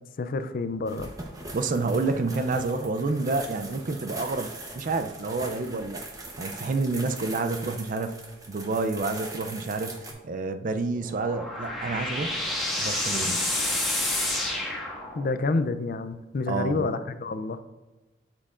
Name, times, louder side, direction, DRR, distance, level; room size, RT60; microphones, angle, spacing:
voice 1, 0.2-1.1 15.2-17.6, left 3 dB, 45° left, 11 dB, 0.4 m, -28 dB
sound 1, 0.8-10.1, right 2 dB, 15° right, 0.8 m, -41 dB
voice 2, 1.5-6.0 6.4-8.2 8.5-10.0 10.2-12.4 12.8-13.5 16.5-16.9, right 3 dB, 40° right, 8 dB, 0.4 m, -29 dB
sound 2, 10.9-15.5, left 1 dB, ahead, 1.4 m, -29 dB
8.4 x 7.5 x 2.5 m, 1.1 s
head